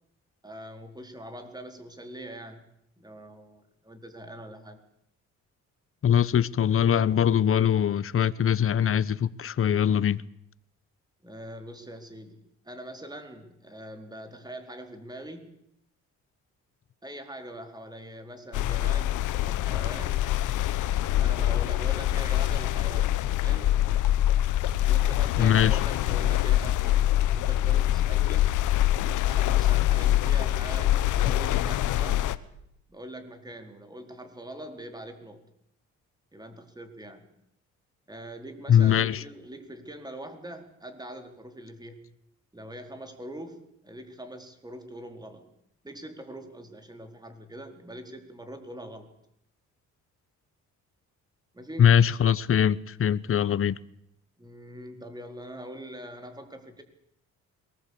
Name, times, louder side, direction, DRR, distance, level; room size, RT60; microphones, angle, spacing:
voice 1, 0.4-2.6 3.0-4.8 11.2-15.6 17.0-20.3 21.2-23.8 24.8-28.5 29.2-32.3 32.9-35.5 36.3-37.3 38.1-42.1 42.5-45.5 45.8-49.1 51.5-52.0 54.4-56.8, right 1 dB, 15° right, 4.4 m, -43 dB
voice 2, 6.0-10.2 25.4-25.7 38.7-39.2 51.8-53.8, left 9 dB, 45° left, 1.0 m, -22 dB
sound 1, 18.5-32.4, left 13 dB, 80° left, 1.1 m, -24 dB
22.5 x 20.0 x 8.7 m
cardioid pair, 90°, 30 cm